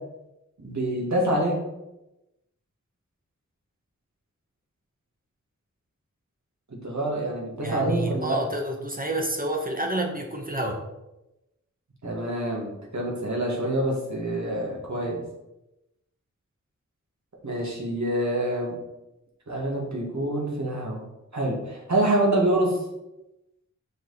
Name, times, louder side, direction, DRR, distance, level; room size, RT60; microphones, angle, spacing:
voice 1, 0.6-1.6 6.7-8.4 12.0-15.2 17.4-18.8 19.5-21.0 21.3-22.8, right 1 dB, 60° right, -2 dB, 2.0 m, -26 dB
voice 2, 7.6-10.8, right 1 dB, 25° right, 2 dB, 1.0 m, -29 dB
6.4 x 4.7 x 4.1 m, 0.94 s
wide cardioid pair, 75°, 31 cm